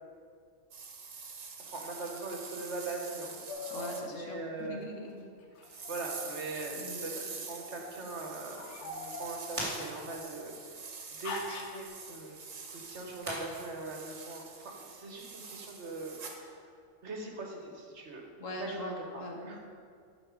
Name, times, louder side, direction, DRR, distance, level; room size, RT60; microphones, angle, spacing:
sound 1, 0.7-4.0 5.6-16.4, right 5 dB, 90° right, 1.4 m, -46 dB
voice 1, 1.6-3.5 4.1-4.8 5.9-10.8 11.1-12.4 12.7-16.6 17.0-18.2 18.6-19.6, right 2 dB, 65° right, 1 dB, 1.5 m, -41 dB
sound 2, 3.5-4.0 5.6-6.8 7.5-7.9 8.5-10.6 11.2-11.9, left 2 dB, 65° left, 1.2 m, -43 dB
voice 2, 3.7-5.3 5.7-5.9 6.7-7.1 18.4-19.5, left 1 dB, 85° left, 1 dB, 1.6 m, -42 dB
sound 3, 6.3-13.3, equal, 25° right, 2.9 m, -46 dB
11.5 x 6.1 x 4.9 m, 2.2 s
omnidirectional pair, 1.3 m